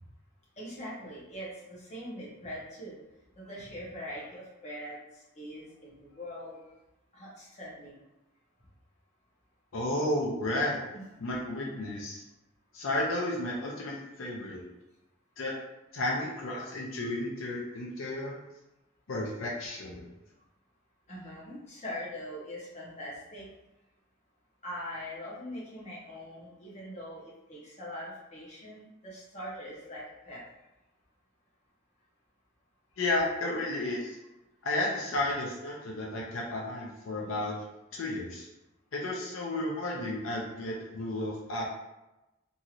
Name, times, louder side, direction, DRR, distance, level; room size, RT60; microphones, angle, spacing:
voice 1, 0.6-3.0 3.4-5.0 5.3-6.6 7.1-7.9 10.9-11.0 21.1-23.5 24.6-30.4, equal, 35° left, -6 dB, 0.9 m, -42 dB
voice 2, 9.7-10.8 11.2-12.2 12.7-14.6 15.4-15.5 15.9-18.4 19.1-20.1 33.0-34.2 34.6-37.6 37.9-38.5 38.9-41.7, left 1 dB, 80° left, -3 dB, 0.5 m, -32 dB
2.9 x 2.7 x 2.4 m, 0.98 s
head